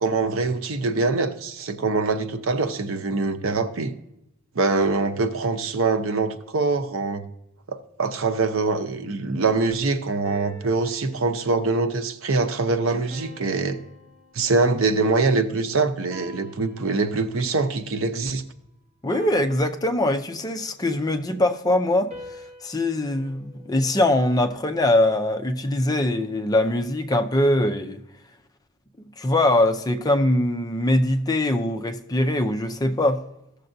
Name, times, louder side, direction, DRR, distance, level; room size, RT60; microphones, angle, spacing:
voice 1, 0.0-3.9 4.5-7.2 7.7-13.8 14.3-18.4, right 3 dB, 80° right, 0.7 m, -24 dB
sound 1, 10.2-11.7 13.1-14.9 16.1-17.5 19.1-20.6 22.1-24.3, equal, 35° right, 1.1 m, -46 dB
voice 2, 19.0-22.1 22.6-28.0 29.0-33.2, left 1 dB, 20° left, 0.5 m, -22 dB
15.0 x 6.7 x 2.6 m
head